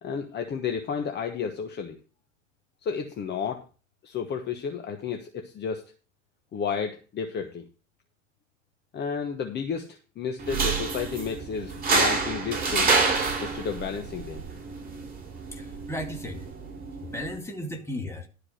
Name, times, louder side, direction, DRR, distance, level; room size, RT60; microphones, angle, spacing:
voice 1, 0.0-2.0 2.8-3.6 4.0-5.8 6.5-7.7 8.9-13.0 13.4-14.4, left 6 dB, 25° left, 5 dB, 1.2 m, -32 dB
sound 1, 10.4-17.4, right 4 dB, 25° right, 3.1 m, -28 dB
voice 2, 15.5-16.5 17.0-18.3, left 1 dB, 5° left, 2 dB, 2.2 m, -35 dB
12.0 x 4.9 x 6.4 m, 0.35 s
hypercardioid pair, 110°, 38 cm